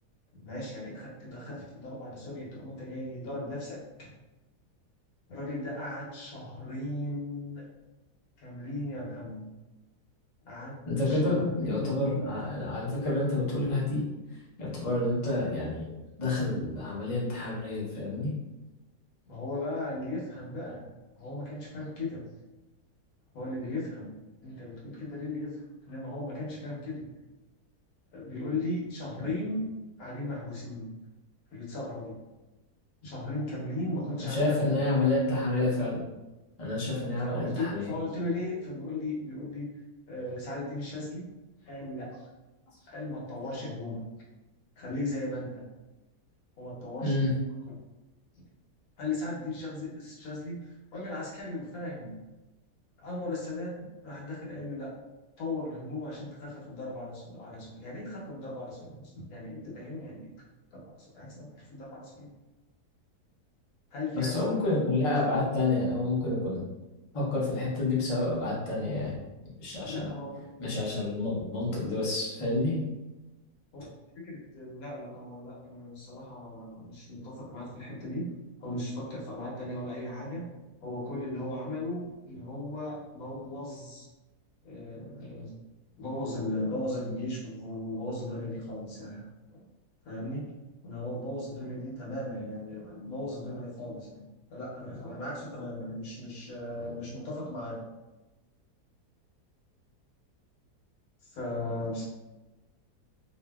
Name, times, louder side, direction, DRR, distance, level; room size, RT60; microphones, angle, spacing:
voice 1, 0.3-4.1 5.3-7.7 8.4-9.5 10.4-10.8 11.0-12.2 19.3-20.9 21.2-22.2 23.3-27.1 28.1-29.7 30.0-30.9 31.5-32.2 33.0-34.8 36.9-39.7 40.1-41.3 41.6-42.3 42.7-44.1 44.8-45.6 46.6-47.3 48.4-48.5 49.0-52.1 53.0-54.9 55.4-60.3 60.7-62.3 63.9-64.4 69.9-70.5 73.7-73.9 74.2-80.5 80.8-84.1 84.6-85.5 86.0-89.3 89.5-89.6 90.0-90.5 90.8-94.2 94.5-97.8 101.2-102.1, left 1 dB, 65° left, -5 dB, 1.2 m, -37 dB
voice 2, 10.9-14.0 14.6-15.9 16.2-18.3 29.2-29.3 34.2-36.0 36.6-37.9 43.5-43.6 47.0-47.3 64.1-66.6 67.1-69.2 69.6-70.1 70.6-72.8, left 2 dB, 35° left, -7 dB, 0.5 m, -29 dB
2.6 x 2.6 x 2.2 m, 1.1 s
omnidirectional pair, 1.7 m